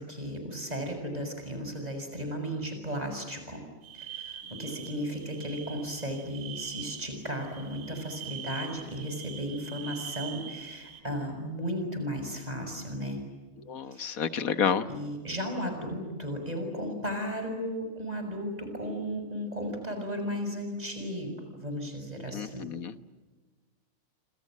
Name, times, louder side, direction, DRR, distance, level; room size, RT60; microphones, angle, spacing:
voice 1, 0.0-3.6 3.9-13.2 13.9-14.2 14.9-22.6, equal, 30° right, 5 dB, 6.7 m, -35 dB
sound 1, 3.8-11.0, right 9 dB, 90° right, 3.2 m, -43 dB
voice 2, 13.7-14.8 22.3-22.9, left 7 dB, 80° left, 11 dB, 1.7 m, -29 dB
28.5 x 26.5 x 7.6 m, 1.3 s
omnidirectional pair, 1.5 m